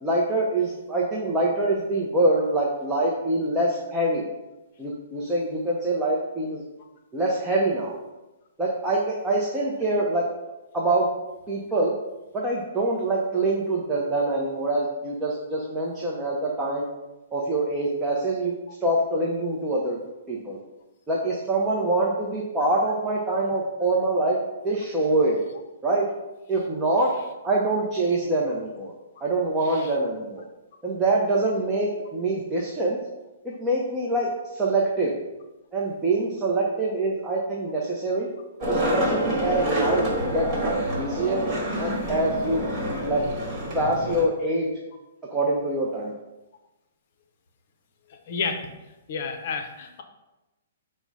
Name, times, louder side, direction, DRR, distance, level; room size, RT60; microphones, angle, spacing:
voice 1, 0.0-4.2 4.8-6.6 7.1-7.9 8.6-10.3 10.7-11.1 11.5-11.9 12.3-16.9 17.3-18.5 18.8-20.0 20.3-20.6 21.1-24.4 24.6-25.4 25.8-26.1 26.5-27.1 27.4-28.9 29.2-30.4 30.8-33.0 33.4-35.1 35.7-38.3 38.7-40.1 40.3-41.4 41.8-42.6 43.0-43.2 43.7-44.7 45.3-46.1, right 2 dB, 10° right, -4 dB, 0.6 m, -25 dB
Skateboard, 38.6-44.2, equal, 25° right, 1.3 m, -27 dB
voice 2, 48.1-48.7 49.1-50.0, left 5 dB, 50° left, 5 dB, 0.6 m, -31 dB
5.2 x 2.1 x 4.7 m, 1.0 s
hypercardioid pair, 155°, 0 cm